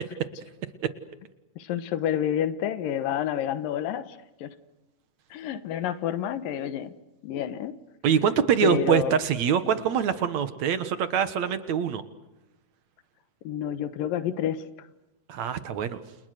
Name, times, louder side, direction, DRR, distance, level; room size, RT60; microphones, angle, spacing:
voice 1, 1.6-4.5 5.3-6.9 7.2-7.7 8.6-9.2 13.4-14.6, left 10 dB, 80° left, 13 dB, 3.0 m, -29 dB
voice 2, 8.0-12.0 15.3-16.0, right 8 dB, 60° right, 12 dB, 2.4 m, -24 dB
29.5 x 29.0 x 6.6 m, 0.99 s
omnidirectional pair, 3.9 m